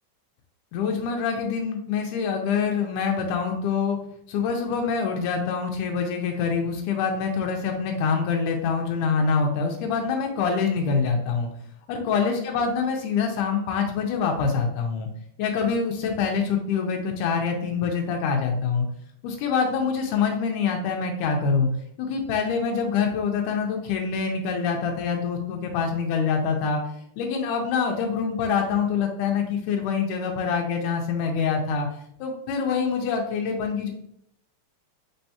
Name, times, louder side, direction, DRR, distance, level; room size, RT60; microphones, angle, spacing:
voice 1, 0.7-4.0 4.3-11.5 11.9-15.1 15.4-18.9 19.2-21.7 22.0-26.8 27.2-31.9 32.2-33.9, left 5 dB, 90° left, 2 dB, 2.1 m, -25 dB
4.4 x 3.9 x 2.7 m, 0.70 s
omnidirectional pair, 3.5 m